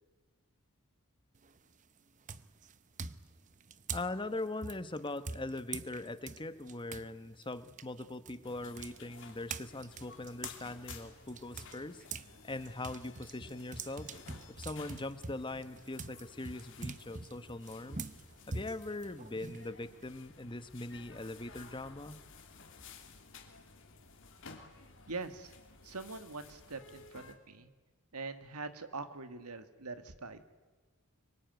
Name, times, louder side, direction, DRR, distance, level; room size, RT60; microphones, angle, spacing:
sound 1, 1.4-1.7 2.3-7.1 7.4-12.3 12.6-20.0, right 4 dB, 35° right, 0.8 m, -45 dB
voice 1, 3.9-14.1 14.5-18.0 18.5-22.2, left 2 dB, 20° left, 12 dB, 1.1 m, -41 dB
sound 2, 8.4-27.3, left 5 dB, 60° left, 3.0 m, -55 dB
voice 2, 25.1-25.5 25.8-27.7 28.1-30.4, right 3 dB, 85° right, 9 dB, 1.8 m, -43 dB
25.0 x 23.0 x 9.3 m, 1.3 s
head